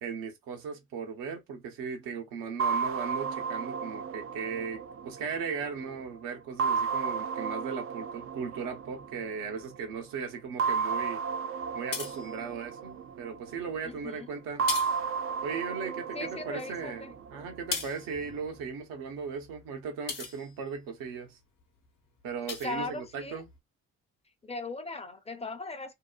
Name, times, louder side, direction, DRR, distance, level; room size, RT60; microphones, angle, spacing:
voice 1, 0.0-4.8 5.0-11.2 11.7-14.7 15.4-21.4 22.2-23.5, right 6 dB, 80° right, 0.8 m, -37 dB
sound 1, 2.6-5.9 6.6-9.5 10.6-13.7 14.6-17.7, right 5 dB, 40° right, 0.4 m, -33 dB
sound 2, 11.6-12.9 13.6-14.1 14.4-15.9 16.2-21.1 21.6-21.9 22.2-23.6, left 5 dB, 65° left, 0.9 m, -40 dB
voice 2, 13.9-14.3 16.1-17.1 22.6-23.4 24.4-26.0, left 3 dB, 20° left, 0.6 m, -38 dB
2.8 x 2.0 x 2.3 m
hypercardioid pair, 50°, 34 cm